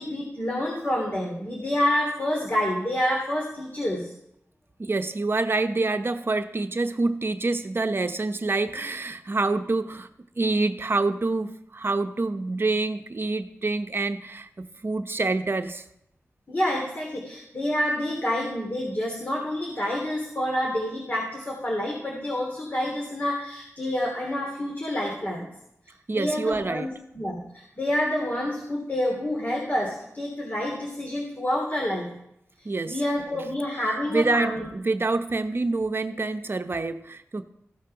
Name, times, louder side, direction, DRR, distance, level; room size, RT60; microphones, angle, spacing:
voice 1, 0.0-4.1 16.5-25.5 26.1-26.9 27.1-32.1 32.8-34.7, left 1 dB, 40° left, -1 dB, 3.0 m, -28 dB
voice 2, 4.8-10.1 10.4-15.8 26.1-26.9 32.6-33.0 34.1-37.4, right 3 dB, 50° right, 8 dB, 0.8 m, -26 dB
15.0 x 6.6 x 5.8 m, 0.78 s
wide cardioid pair, 60°, 5 cm